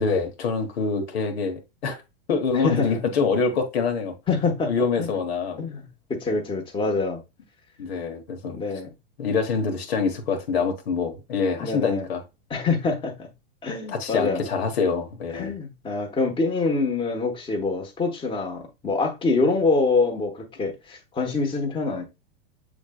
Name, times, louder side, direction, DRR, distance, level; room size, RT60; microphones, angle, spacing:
voice 1, 0.0-2.0 2.3-4.1 4.7-5.6 7.8-8.6 9.2-12.2 13.9-15.5, left 5 dB, 85° left, 1.3 m, -25 dB
voice 2, 2.6-3.0 4.3-4.7 5.0-5.1 5.6-7.2 8.5-8.9 11.6-12.1 12.5-13.3 13.6-14.4 15.3-22.0, left 3 dB, 15° left, 1.1 m, -25 dB
7.1 x 3.3 x 2.2 m
supercardioid pair, 130°, 31 cm